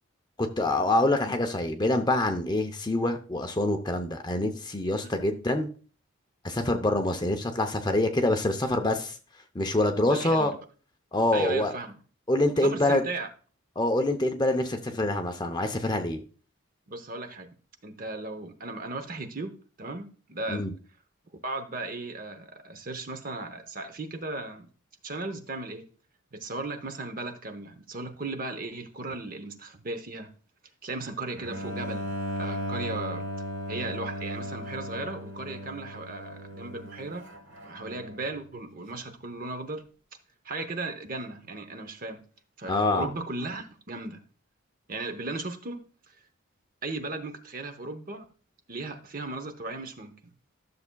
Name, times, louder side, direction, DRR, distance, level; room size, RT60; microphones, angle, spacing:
voice 1, 0.4-5.7 6.4-9.1 9.5-10.5 11.1-11.7 12.3-13.0 13.8-16.2 20.5-20.7 42.7-43.1, left 1 dB, 20° left, 5 dB, 0.6 m, -26 dB
voice 2, 10.0-10.5 11.3-12.0 12.5-13.3 16.9-17.5 17.8-20.7 21.4-24.7 25.0-25.9 26.3-30.3 30.8-33.3 33.7-37.3 37.6-39.8 40.4-42.2 42.6-44.2 44.9-45.8 46.8-48.2 48.7-50.1, right 2 dB, 40° right, 8 dB, 0.8 m, -36 dB
Bowed string instrument, 31.3-38.4, equal, 60° right, 1.2 m, -36 dB
12.0 x 6.8 x 2.3 m, 0.39 s
head